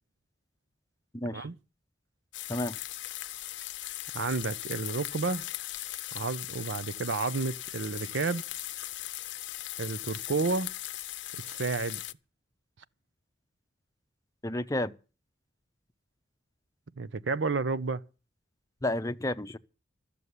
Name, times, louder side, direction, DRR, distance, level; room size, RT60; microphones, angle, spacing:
voice 1, 1.1-1.5 2.5-2.8 14.4-14.9 18.8-19.6, left 1 dB, 15° left, 0.6 m, -31 dB
sound 1, 2.3-12.1, left 15 dB, 70° left, 0.7 m, -39 dB
voice 2, 4.1-5.4 6.1-8.4 9.8-10.7 11.3-12.0 17.0-18.0, right 4 dB, 70° right, 0.6 m, -31 dB
13.5 x 6.8 x 9.6 m
head